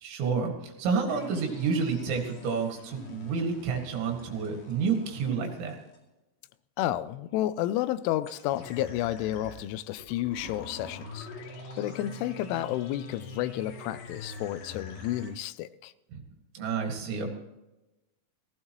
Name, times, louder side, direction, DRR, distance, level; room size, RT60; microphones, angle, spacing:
voice 1, 0.0-5.8 16.1-16.2 16.6-17.3, right 5 dB, 75° right, 4.2 m, -29 dB
sound 1, 1.1-6.0 8.2-15.3, left 2 dB, 65° left, 4.4 m, -45 dB
voice 2, 6.8-11.3 11.8-15.9, left 13 dB, 90° left, 3.1 m, -31 dB
17.5 x 16.0 x 3.0 m
omnidirectional pair, 5.4 m